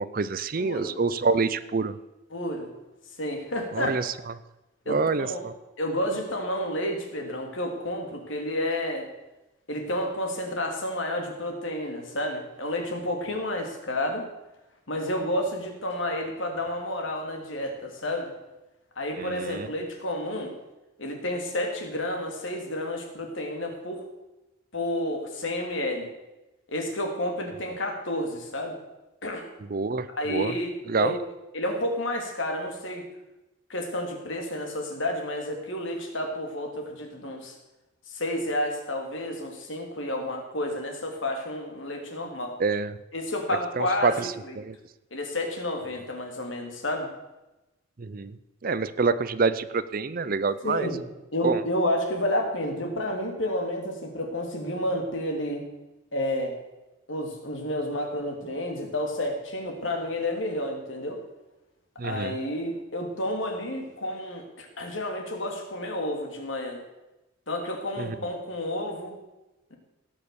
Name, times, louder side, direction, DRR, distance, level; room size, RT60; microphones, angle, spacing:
voice 1, 0.0-1.9 3.7-4.1 4.9-5.5 19.2-19.7 29.7-30.5 30.9-31.1 42.6-43.0 43.8-44.3 44.6-44.7 48.0-48.3 48.6-50.9 51.4-51.6 62.0-62.3 68.0-68.1, right 4 dB, 45° right, 15 dB, 0.5 m, -26 dB
voice 2, 0.6-1.0 2.3-2.7 3.2-4.1 4.9-5.4 5.8-9.1 9.7-14.2 14.9-18.3 19.0-20.5 21.0-24.0 24.7-26.1 26.7-28.8 29.2-29.5 30.1-30.7 31.0-31.2 31.5-33.1 33.7-37.6 38.1-42.6 43.1-44.1 44.4-44.6 45.1-47.1 50.6-51.0 51.3-55.6 56.1-56.6 57.1-61.2 62.0-66.8 67.5-69.2, left 1 dB, 70° left, 3 dB, 2.8 m, -30 dB
17.0 x 6.6 x 7.0 m, 0.99 s
head